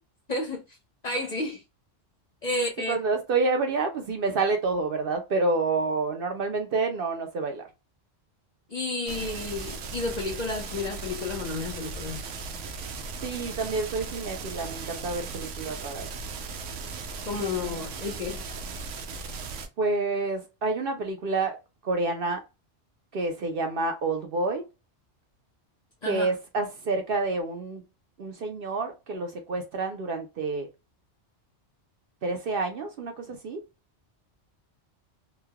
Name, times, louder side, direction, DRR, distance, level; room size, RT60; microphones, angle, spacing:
voice 1, 0.3-0.8 1.0-1.6 2.4-3.0 8.7-12.2 17.2-18.5 26.0-26.3, left 2 dB, 45° left, 0.6 m, -31 dB
voice 2, 2.9-7.7 13.2-16.1 19.8-21.6 21.8-22.4 23.1-24.6 26.0-27.8 28.2-30.7 32.2-33.6, right 3 dB, 60° right, 0.7 m, -28 dB
sound 1, 9.1-19.7, right 4 dB, 85° right, 0.9 m, -37 dB
3.2 x 2.2 x 2.2 m
omnidirectional pair, 1.2 m